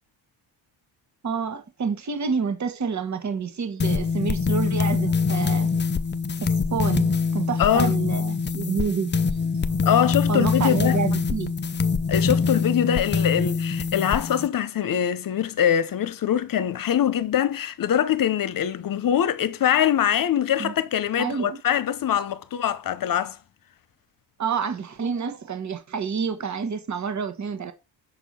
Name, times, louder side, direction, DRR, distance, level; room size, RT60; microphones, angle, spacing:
voice 1, 1.2-5.7 6.4-9.1 9.4-9.9 10.3-11.5 20.6-20.7 21.2-21.6 24.4-27.7, right 6 dB, 40° right, 1.4 m, -28 dB
sound 1, 3.8-14.5, left 5 dB, 25° left, 0.6 m, -24 dB
voice 2, 7.6-7.9 9.8-11.0 12.1-23.4, left 9 dB, 50° left, 0.9 m, -23 dB
7.0 x 4.5 x 5.4 m
cardioid pair, 105°, 44 cm